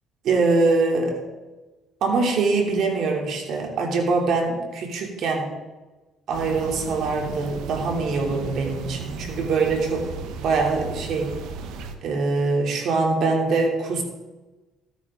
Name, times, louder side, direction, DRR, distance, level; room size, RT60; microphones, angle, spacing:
voice 1, 0.2-1.2 2.0-5.5 6.3-10.1 10.4-11.3 12.0-14.0, right 3 dB, 65° right, 1 dB, 2.9 m, -23 dB
sound 1, 6.3-12.0, right 4 dB, 85° right, 1.1 m, -35 dB
13.5 x 9.3 x 3.7 m, 1.2 s
cardioid pair, 95°, 0 cm